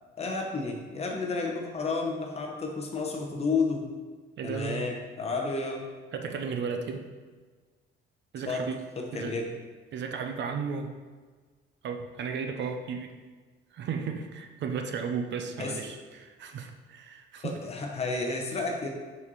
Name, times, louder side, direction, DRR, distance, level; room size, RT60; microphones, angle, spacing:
voice 1, 0.2-3.9 4.4-5.8 8.5-8.7 9.0-9.5 15.6-15.8 17.4-18.9, left 3 dB, 30° left, 1 dB, 1.0 m, -31 dB
voice 2, 4.4-4.9 6.1-7.1 8.3-8.8 9.1-9.4 9.9-10.9 11.8-13.1 13.7-17.6, right 6 dB, 60° right, 5 dB, 0.7 m, -34 dB
5.9 x 5.4 x 4.1 m, 1.4 s
cardioid pair, 145°, 21 cm